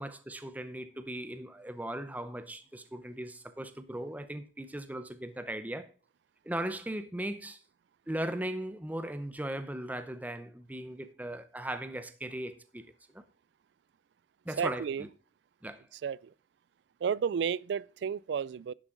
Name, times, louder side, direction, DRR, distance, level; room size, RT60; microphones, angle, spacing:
voice 1, 0.0-5.9 6.4-7.6 8.1-13.2 14.4-15.1 15.6-15.8, right 1 dB, 10° right, 0.7 m, -38 dB
voice 2, 14.6-15.1 15.9-16.3 17.0-18.7, right 7 dB, 65° right, 0.3 m, -32 dB
11.0 x 7.5 x 3.8 m
head